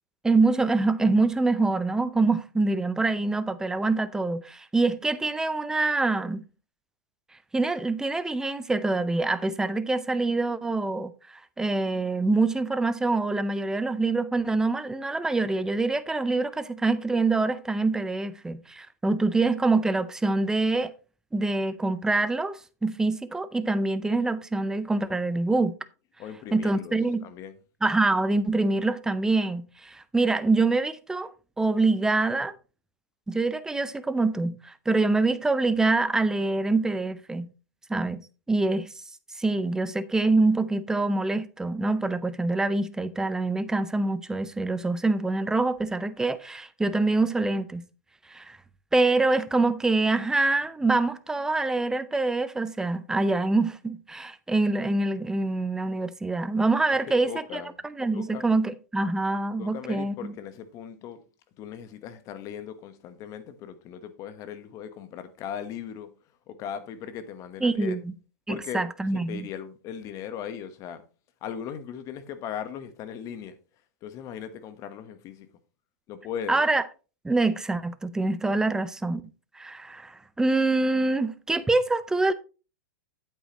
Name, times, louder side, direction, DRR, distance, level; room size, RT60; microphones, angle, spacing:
voice 1, 0.2-6.4 7.5-20.9 21.3-25.8 26.5-27.3 27.8-32.6 33.3-37.5 37.9-38.9 39.3-47.9 48.3-48.6 48.9-60.3 67.6-68.1 68.5-69.5 76.5-76.8 77.2-79.2 79.5-82.3, right 3 dB, 5° right, 0.6 m, -25 dB
voice 2, 26.2-27.5 57.2-57.8 58.1-58.4 59.6-61.2 61.6-66.1 66.5-68.0 68.5-68.8 69.3-71.0 71.4-73.6 74.0-75.5 76.1-76.6, left 8 dB, 35° left, 1.2 m, -38 dB
8.9 x 8.4 x 3.0 m
hypercardioid pair, 120°, 9 cm